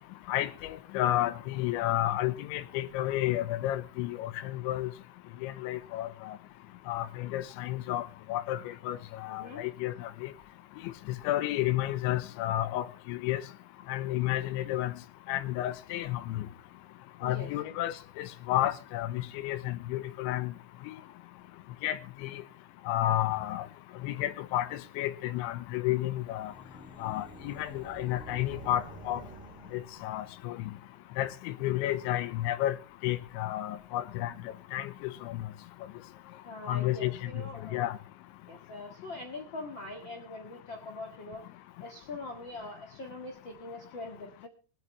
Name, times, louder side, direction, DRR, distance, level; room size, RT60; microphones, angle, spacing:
voice 1, 0.3-4.9 5.4-6.4 6.9-10.3 11.2-13.4 13.9-14.9 15.3-16.4 17.2-20.5 21.8-22.4 22.9-23.6 24.0-26.5 27.0-29.2 29.7-30.7 31.2-32.8 33.0-34.3 34.7-35.4 36.7-37.1 37.7-38.0, left 14 dB, 90° left, 3.2 m, -31 dB
voice 2, 9.3-9.6 17.2-17.5 36.4-38.0 38.5-41.4 41.8-44.5, left 2 dB, 70° left, 1.1 m, -42 dB
sound 1, 25.9-30.5, right 2 dB, ahead, 2.2 m, -49 dB
23.0 x 8.5 x 3.2 m
omnidirectional pair, 5.3 m